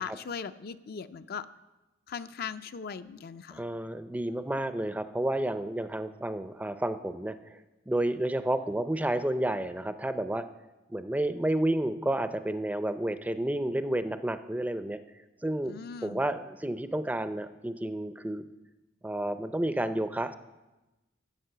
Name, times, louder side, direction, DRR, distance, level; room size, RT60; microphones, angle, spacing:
voice 1, 0.0-1.5 2.1-3.6 15.6-16.2, left 6 dB, 55° left, 12 dB, 0.4 m, -39 dB
voice 2, 3.5-7.6 7.9-10.4 10.9-15.0 15.4-18.4 19.0-20.3, right 1 dB, 10° right, 11 dB, 0.4 m, -31 dB
12.5 x 8.2 x 6.7 m, 1.1 s
head